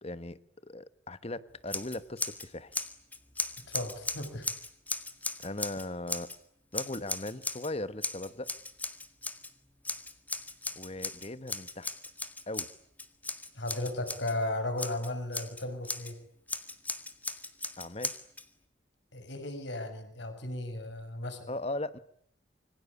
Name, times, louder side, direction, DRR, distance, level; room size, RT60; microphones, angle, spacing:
voice 1, 0.0-2.7 5.4-6.3 6.7-8.5 10.7-11.9 12.5-12.7 17.8-18.2 21.5-22.0, left 2 dB, 30° left, 1.3 m, -38 dB
Scissors, 1.7-2.5 2.7-6.4 6.7-7.7 8.0-9.5 9.8-14.3 14.8-16.1 16.5-18.4, left 3 dB, 10° left, 1.8 m, -37 dB
voice 2, 3.6-4.5 13.5-16.1 19.1-21.5, left 1 dB, 65° left, 6.6 m, -35 dB
26.5 x 24.5 x 8.5 m
head